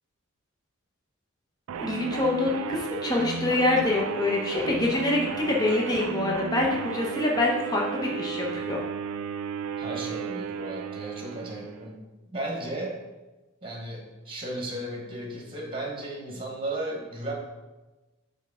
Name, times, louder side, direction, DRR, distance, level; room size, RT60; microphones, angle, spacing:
sound 1, 1.7-11.9, right 6 dB, 70° right, 0.3 m, -34 dB
voice 1, 1.8-8.8, left 2 dB, 20° left, -2 dB, 0.8 m, -26 dB
voice 2, 9.8-12.0 12.3-13.0 13.6-17.3, right 1 dB, 25° right, -1 dB, 1.1 m, -35 dB
6.4 x 4.2 x 3.6 m, 1.1 s
head